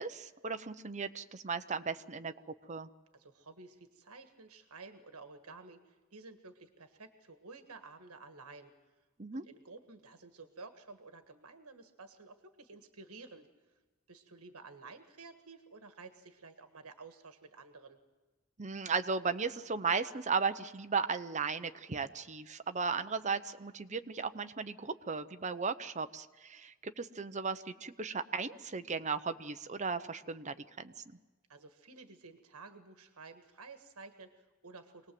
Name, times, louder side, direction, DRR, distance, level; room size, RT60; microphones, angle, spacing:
voice 1, 0.0-2.3 2.7-2.9 9.2-9.4 18.6-30.9, right 5 dB, 30° right, 10 dB, 0.8 m, -36 dB
voice 2, 3.1-8.7 9.4-13.5 14.1-18.0 31.5-35.1, right 3 dB, 80° right, 8 dB, 1.5 m, -52 dB
25.5 x 19.5 x 7.8 m, 1.2 s
head